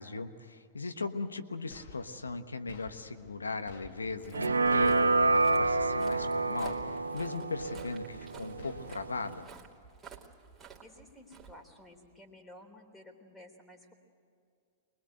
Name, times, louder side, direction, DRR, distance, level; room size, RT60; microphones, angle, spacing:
voice 1, 0.0-9.5, left 3 dB, 85° left, 8 dB, 1.2 m, -38 dB
sound 1, 1.7-2.4 2.7-3.4 3.7-4.4 4.6-5.3 5.6-6.3 6.6-7.3 7.6-8.3 8.6-9.3, left 4 dB, 65° left, 2.4 m, -52 dB
Walk footsteps, 3.9-12.2, right 7 dB, 15° right, 2.9 m, -53 dB
sound 2, 4.3-9.4, right 3 dB, 85° right, 0.6 m, -28 dB
voice 2, 10.8-13.9, left 1 dB, 10° left, 4 dB, 3.4 m, -53 dB
24.5 x 20.5 x 7.9 m, 2.4 s
figure-of-eight pair, 105°, 0 cm